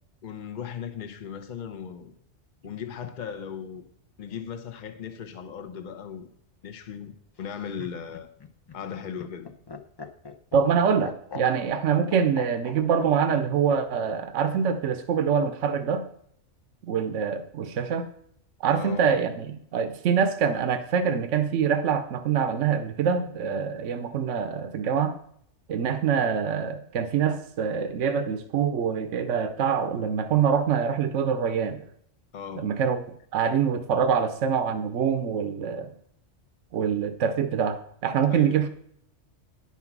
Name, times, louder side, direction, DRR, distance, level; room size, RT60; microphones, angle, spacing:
voice 1, 0.2-2.1 2.6-3.9 4.2-6.3 6.6-7.1 7.4-8.3 8.7-9.5 18.7-19.2 32.3-32.7 38.3-38.7, left 7 dB, 45° left, 0.9 m, -37 dB
Laughter, 7.4-13.1 14.4-15.0, left 4 dB, 30° left, 0.6 m, -42 dB
voice 2, 10.5-16.0 16.8-18.1 18.6-25.2 25.7-31.8 32.6-33.0 33.3-35.9 36.7-38.7, right 7 dB, 80° right, 1.1 m, -25 dB
10.0 x 5.9 x 5.9 m
omnidirectional pair, 1.2 m